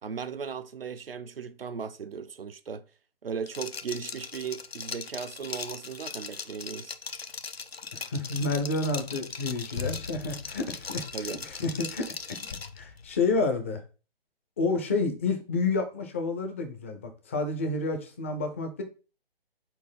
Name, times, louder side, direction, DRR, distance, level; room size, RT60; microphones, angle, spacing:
voice 1, 0.0-2.8 3.2-6.9 11.1-11.4, right 6 dB, 70° right, 0.7 m, -37 dB
Liquid, 3.5-12.8, left 5 dB, 85° left, 0.7 m, -39 dB
voice 2, 7.9-12.1 12.8-13.8 14.6-18.8, left 3 dB, 15° left, 0.5 m, -29 dB
sound 1, 9.3-13.7, left 6 dB, 60° left, 1.0 m, -44 dB
4.5 x 4.3 x 5.4 m
figure-of-eight pair, 140°, 30 cm